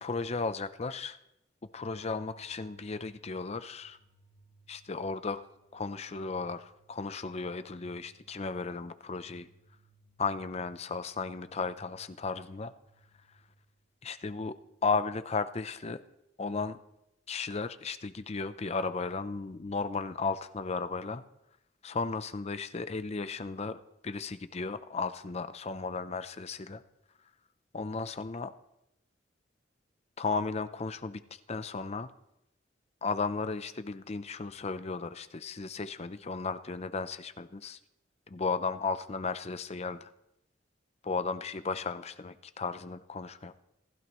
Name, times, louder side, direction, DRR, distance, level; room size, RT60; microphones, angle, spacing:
voice 1, 0.0-1.2 1.7-4.0 4.7-5.5 5.7-9.5 10.2-12.7 14.0-16.0 16.4-16.8 17.3-21.2 21.8-26.8 27.7-28.5 30.2-32.1 33.0-37.8 38.3-40.1 41.0-43.6, left 4 dB, 35° left, 12 dB, 0.6 m, -35 dB
sound 1, 2.0-14.0, right 1 dB, 45° right, 1.9 m, -63 dB
27.0 x 15.0 x 3.1 m, 0.83 s
head